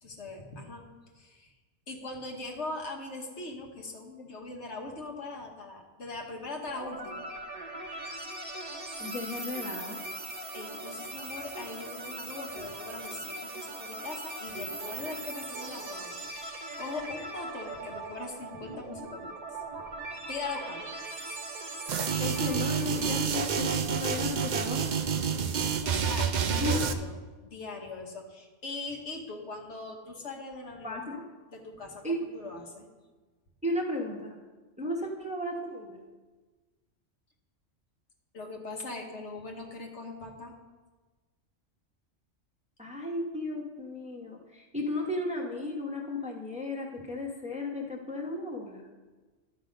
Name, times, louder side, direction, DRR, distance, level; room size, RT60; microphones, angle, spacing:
voice 1, 0.0-0.9 1.1-1.5 1.9-7.3 10.5-19.3 20.3-21.0 25.8-27.2 27.4-31.0 31.5-32.9 38.3-40.5, left 3 dB, 65° left, 1 dB, 1.5 m, -41 dB
sound 1, 6.7-23.5, right 2 dB, 35° right, 1.1 m, -40 dB
voice 2, 9.0-10.0 22.2-24.9 26.6-26.8 30.8-31.2 32.0-32.2 33.6-34.3 34.8-36.0 42.8-48.8, left 1 dB, 5° right, -1 dB, 1.0 m, -34 dB
sound 2, 21.9-26.9, right 6 dB, 55° right, 0.5 m, -28 dB
11.5 x 6.6 x 5.2 m, 1.3 s
omnidirectional pair, 1.3 m